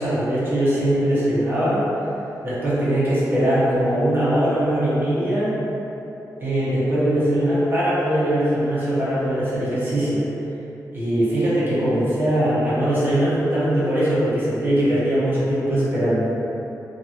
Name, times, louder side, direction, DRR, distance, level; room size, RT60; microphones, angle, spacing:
voice 1, 0.0-1.9 2.4-5.6 6.4-10.2 10.9-16.2, right 1 dB, 30° right, -11 dB, 1.0 m, -21 dB
2.8 x 2.6 x 2.5 m, 3.0 s
wide cardioid pair, 110°, 7 cm